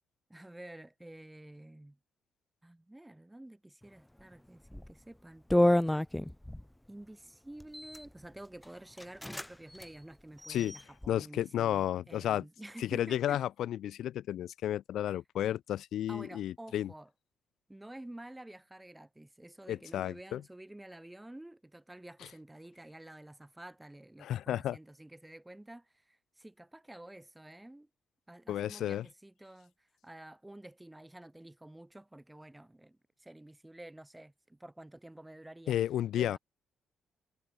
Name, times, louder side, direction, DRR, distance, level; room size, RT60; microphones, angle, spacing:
voice 1, 0.3-2.0 2.6-5.5 6.9-13.4 15.1-15.2 16.1-17.1 17.7-27.9 28.3-35.8 36.2-36.4, right 1 dB, 10° right, 4.1 m, -50 dB
sound 1, 4.7-4.9 5.5-6.6 7.6-8.1 8.6-8.7 9.0-9.5 9.7-9.9 10.4-11.1, left 1 dB, 5° left, 0.3 m, -29 dB
voice 2, 11.1-12.4 12.8-16.9 19.7-20.4 24.2-24.8 28.5-29.0 35.7-36.4, left 11 dB, 75° left, 0.4 m, -32 dB
cardioid pair, 90°, 0 cm